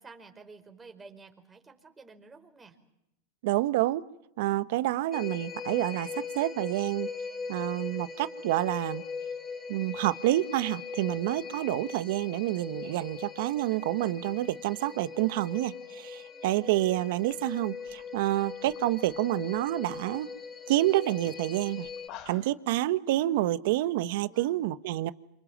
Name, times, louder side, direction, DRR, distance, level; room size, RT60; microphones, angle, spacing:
voice 1, 0.0-2.8 16.2-16.7 24.3-24.6, right 4 dB, 15° right, 5 dB, 5.0 m, -52 dB
voice 2, 3.4-4.0 4.4-7.1 7.5-9.0 9.7-20.3 20.7-21.9 22.3-25.1, right 16 dB, 70° right, 13 dB, 1.4 m, -28 dB
sound 1, 5.1-22.1, left 5 dB, 25° left, 3.0 m, -40 dB
sound 2, 16.9-17.0 17.2-19.2 19.5-20.0 20.3-20.4 20.7-20.9 21.3-21.4 21.8-22.6, left 10 dB, 50° left, 3.1 m, -50 dB
29.5 x 26.5 x 7.4 m, 0.83 s
supercardioid pair, 120°, 0 cm